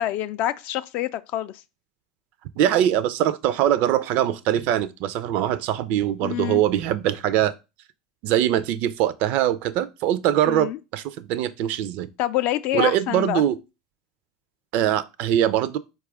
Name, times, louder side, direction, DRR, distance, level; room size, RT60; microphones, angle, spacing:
voice 1, 0.0-1.5 6.2-6.6 10.5-10.8 12.2-13.4, left 13 dB, 50° left, 0.3 m, -26 dB
voice 2, 2.6-7.5 8.2-12.1 12.7-13.6 14.7-15.8, right 11 dB, 55° right, 0.4 m, -22 dB
4.6 x 2.3 x 4.7 m
hypercardioid pair, 85°, 3 cm